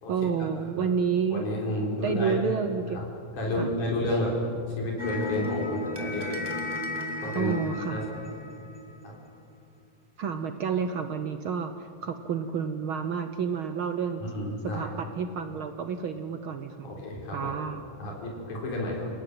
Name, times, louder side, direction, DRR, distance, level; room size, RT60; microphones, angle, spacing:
voice 1, 0.1-1.4 2.0-3.0 3.6-3.7 7.3-7.9 10.2-11.7 12.0-14.2 14.6-16.9 17.3-17.8, right 6 dB, 70° right, 8 dB, 1.2 m, -29 dB
voice 2, 1.3-2.4 2.9-3.1 3.3-4.3 4.8-6.4 7.2-7.5 7.9-8.1 9.0-9.1 14.3-14.9 16.8-17.5 18.0-19.1, left 1 dB, 80° left, -2 dB, 5.6 m, -31 dB
sound 1, 5.0-9.3, left 2 dB, 10° right, 1.4 m, -35 dB
29.5 x 18.0 x 7.9 m, 2.5 s
omnidirectional pair, 3.5 m